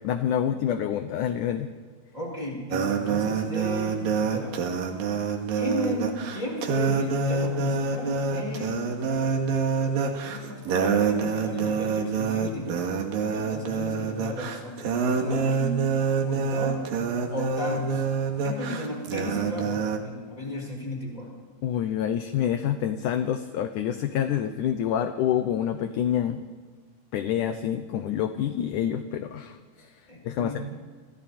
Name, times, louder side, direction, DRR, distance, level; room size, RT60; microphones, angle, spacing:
voice 1, 0.0-1.7 21.6-26.4 27.1-29.9 30.2-30.6, left 10 dB, 70° left, 8 dB, 2.3 m, -27 dB
voice 2, 2.1-4.5 5.5-8.8 9.1-9.4 9.8-12.8 13.3-14.8 15.1-15.7 16.2-16.9 17.3-18.0 18.4-21.3 30.1-30.6, left 1 dB, 10° left, -1 dB, 6.3 m, -35 dB
sound 1, 2.7-20.0, right 5 dB, 80° right, 3.6 m, -26 dB
29.0 x 27.5 x 4.4 m, 1.5 s
omnidirectional pair, 4.1 m